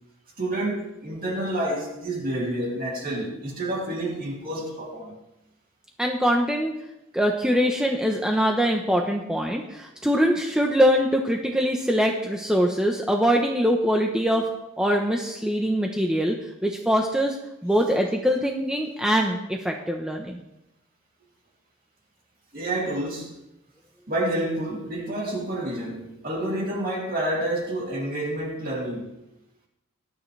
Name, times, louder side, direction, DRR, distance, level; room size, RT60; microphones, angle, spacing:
voice 1, 0.4-5.2 22.5-23.3 24.1-29.1, right 1 dB, 40° right, 3.0 m, -29 dB
voice 2, 6.0-6.7 7.1-14.5 14.8-17.4 17.6-20.4, equal, 5° right, 0.9 m, -23 dB
20.0 x 11.5 x 3.4 m
head